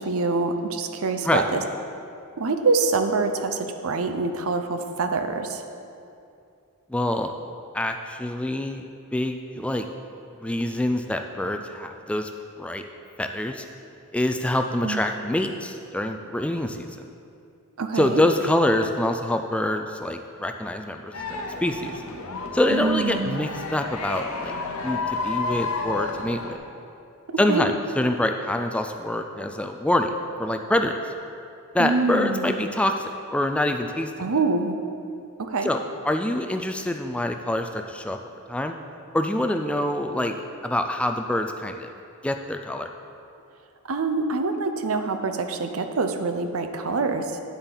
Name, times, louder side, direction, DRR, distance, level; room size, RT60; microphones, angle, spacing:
voice 1, 0.0-1.6 2.4-5.6 14.8-15.0 17.8-18.2 22.7-23.5 27.3-27.6 31.8-32.5 34.2-34.8 35.4-35.7 43.9-47.4, right 3 dB, 70° right, 7 dB, 0.7 m, -25 dB
voice 2, 6.9-7.3 7.7-8.8 9.1-9.9 10.4-12.3 12.6-12.8 13.2-13.6 14.1-17.1 17.9-21.9 22.5-24.5 24.8-26.6 27.4-30.1 30.4-31.0 31.7-34.3 35.6-38.2 38.5-38.7 39.1-40.3 40.6-41.9 42.2-42.9, left 1 dB, 5° left, 5 dB, 0.3 m, -25 dB
sound 1, 21.1-26.5, left 4 dB, 75° left, 0.9 m, -31 dB
9.7 x 8.1 x 3.9 m, 2.6 s
head